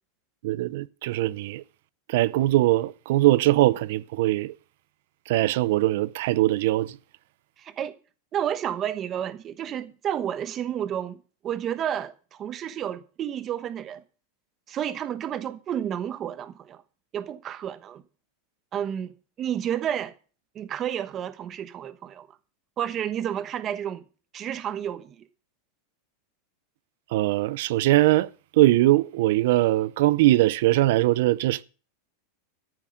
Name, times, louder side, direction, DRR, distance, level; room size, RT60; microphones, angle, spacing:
voice 1, 0.4-1.6 2.1-4.5 5.3-6.9 27.1-28.3 28.6-31.6, right 17 dB, 65° right, 0.6 m, -21 dB
voice 2, 7.6-7.9 8.3-11.2 11.4-14.0 14.7-16.8 17.1-18.0 18.7-19.1 19.4-20.1 20.5-22.3 22.8-24.0 24.3-25.3, right 10 dB, 25° right, 1.1 m, -31 dB
13.5 x 7.3 x 6.5 m
supercardioid pair, 155°, 0 cm